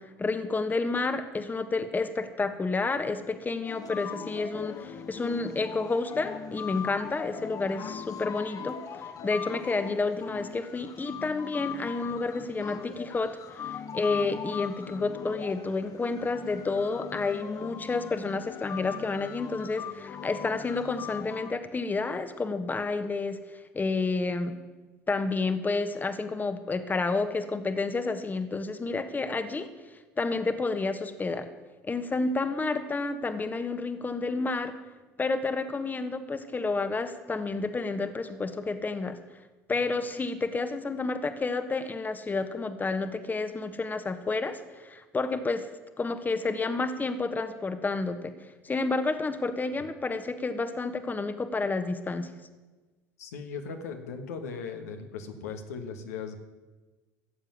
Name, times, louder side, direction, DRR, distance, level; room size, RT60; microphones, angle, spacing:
voice 1, 0.0-24.5 25.1-29.7 30.2-31.5 31.8-34.8 35.2-39.2 39.7-45.7 46.0-48.3 48.6-52.3, left 3 dB, 20° left, 10 dB, 1.3 m, -30 dB
sound 1, 3.6-21.5, left 7 dB, 45° left, 1.4 m, -40 dB
voice 2, 53.2-56.4, left 5 dB, 85° left, 5 dB, 1.5 m, -38 dB
15.0 x 7.4 x 9.4 m, 1.2 s
hypercardioid pair, 75°, 8 cm